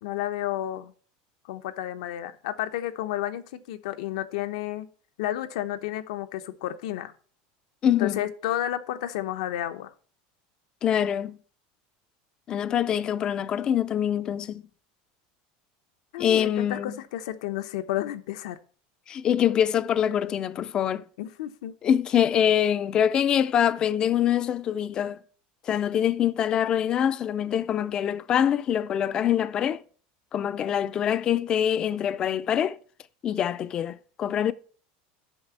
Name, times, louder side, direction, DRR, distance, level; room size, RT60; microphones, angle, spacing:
voice 1, 0.0-0.9 1.4-4.9 5.2-7.1 8.0-9.9 16.1-18.6 21.2-21.7, left 13 dB, 75° left, 0.9 m, -31 dB
voice 2, 7.8-8.2 10.8-11.4 12.5-14.6 16.2-17.0 19.1-21.0 21.8-25.2 25.7-29.8 30.3-32.8 33.2-34.5, left 9 dB, 25° left, 0.4 m, -24 dB
6.3 x 5.8 x 7.2 m
supercardioid pair, 175°, 3 cm